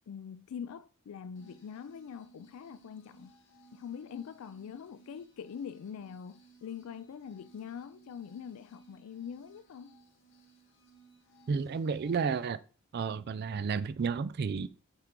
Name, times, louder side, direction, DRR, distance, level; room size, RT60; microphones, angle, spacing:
voice 1, 0.1-3.3 3.7-9.9, left 7 dB, 75° left, 0.3 m, -44 dB
sound 1, 1.3-12.4, right 4 dB, 55° left, 1.2 m, -61 dB
voice 2, 11.5-12.6 12.9-14.7, right 5 dB, 45° right, 0.3 m, -31 dB
8.1 x 4.6 x 3.7 m
head